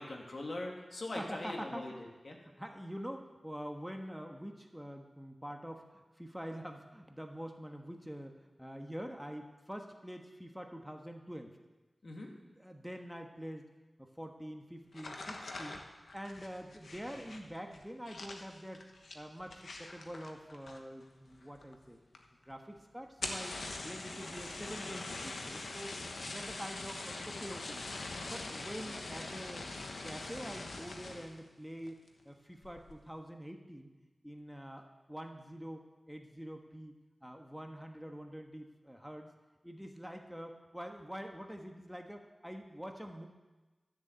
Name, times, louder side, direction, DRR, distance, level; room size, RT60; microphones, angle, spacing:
voice 1, 0.0-2.4 12.0-12.3, left 2 dB, 65° left, 1 dB, 2.3 m, -42 dB
voice 2, 1.1-2.0 2.4-11.6 12.4-13.7 14.0-15.8 16.1-18.9 19.1-22.0 22.4-25.9 26.3-27.9 28.2-29.7 30.0-33.9 34.2-36.9 37.2-39.3 39.6-43.3, equal, 5° right, 3 dB, 1.3 m, -45 dB
sound 1, 14.9-21.0 21.3-21.8 22.1-22.2 22.5-22.6 23.1-31.4 31.8-32.2 32.6-33.0, left 2 dB, 90° left, 1.2 m, -43 dB
13.0 x 7.1 x 8.2 m, 1.2 s
wide cardioid pair, 55°, 0 cm